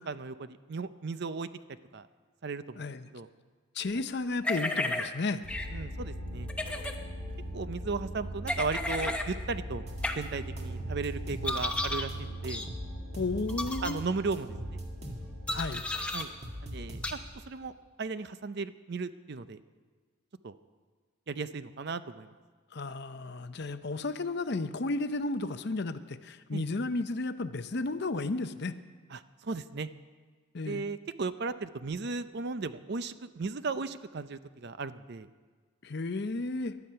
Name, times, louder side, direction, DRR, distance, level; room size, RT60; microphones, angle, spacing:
voice 1, 0.1-1.5 1.9-2.0 2.4-2.8 3.1-3.3 5.7-6.5 7.5-9.8 10.2-12.7 13.8-14.8 16.1-16.3 16.6-17.2 17.5-17.7 18.0-19.6 20.4-20.6 21.3-22.3 26.5-26.6 29.1-29.9 30.7-35.3, right 4 dB, 50° right, 13 dB, 0.5 m, -36 dB
voice 2, 2.8-3.1 3.7-5.4 13.2-14.0 15.5-15.8 22.7-28.7 30.5-30.9 35.8-36.8, left 3 dB, 50° left, 11 dB, 0.6 m, -33 dB
sound 1, 4.4-5.1 5.5-5.7 6.5-6.9 8.5-9.3 10.0-10.1 11.4-12.1 12.5-12.7 13.5-13.9 15.5-16.2 17.0-17.1, left 2 dB, 5° left, 0.8 m, -32 dB
sound 2, 5.4-17.4, equal, 75° right, 4.1 m, -40 dB
sound 3, 9.9-10.3 10.6-12.1 12.4-14.0 14.3-17.4, equal, 30° right, 2.0 m, -42 dB
18.5 x 12.0 x 5.6 m, 1.5 s
head